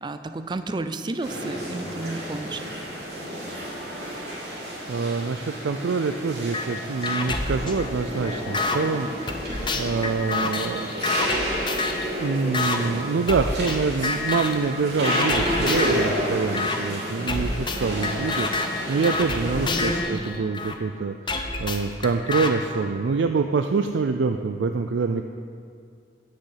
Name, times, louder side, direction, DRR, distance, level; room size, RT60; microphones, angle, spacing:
voice 1, 0.0-2.6 20.0-20.2, right 2 dB, 25° right, 10 dB, 0.4 m, -32 dB
sound 1, 1.2-20.0, equal, 60° right, 3.1 m, -31 dB
voice 2, 4.9-9.1 9.4-9.5 9.7-10.9 12.2-25.2, right 4 dB, 85° right, 7 dB, 0.4 m, -26 dB
sound 2, 6.5-6.7 7.0-8.8 9.3-12.1 12.5-12.8 13.3-13.8 14.0-14.6 15.0-16.0 16.5-16.8 17.3-20.8 21.3-22.5, left 3 dB, 25° left, 0.7 m, -28 dB
9.9 x 6.7 x 7.4 m, 2.3 s
head